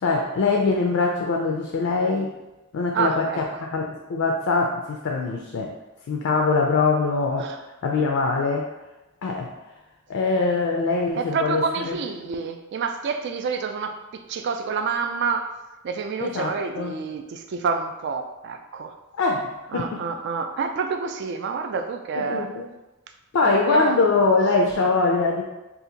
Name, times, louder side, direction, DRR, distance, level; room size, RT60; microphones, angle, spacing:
voice 1, 0.0-2.3 2.7-5.7 6.1-7.5 7.8-8.7 9.2-9.5 10.1-12.0 16.2-16.9 19.2-19.5 19.7-20.0 22.1-22.7 23.3-25.4, left 3 dB, 70° left, 1 dB, 0.4 m, -23 dB
voice 2, 2.9-3.4 7.4-7.6 11.2-15.5 15.8-18.9 19.7-22.5 23.5-24.0, right 5 dB, 55° right, 6 dB, 0.3 m, -28 dB
2.7 x 2.4 x 3.9 m, 1.0 s
head